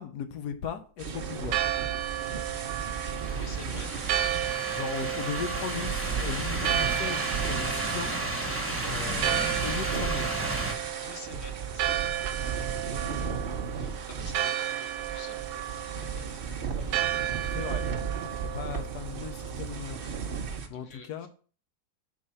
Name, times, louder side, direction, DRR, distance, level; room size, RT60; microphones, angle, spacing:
voice 1, 0.0-1.6 4.7-8.1 8.9-10.5 17.5-17.8 18.5-20.1 20.7-21.3, left 7 dB, 70° left, 1.3 m, -37 dB
sound 1, 1.0-20.7, right 6 dB, 55° right, 0.6 m, -35 dB
Church bell, 1.1-20.6, right 11 dB, 80° right, 1.2 m, -33 dB
sound 2, 2.9-10.7, right 2 dB, 10° right, 0.8 m, -34 dB
voice 2, 3.3-4.8 10.9-17.1 20.7-21.3, left 3 dB, 50° left, 1.2 m, -50 dB
5.1 x 4.1 x 5.7 m
omnidirectional pair, 1.9 m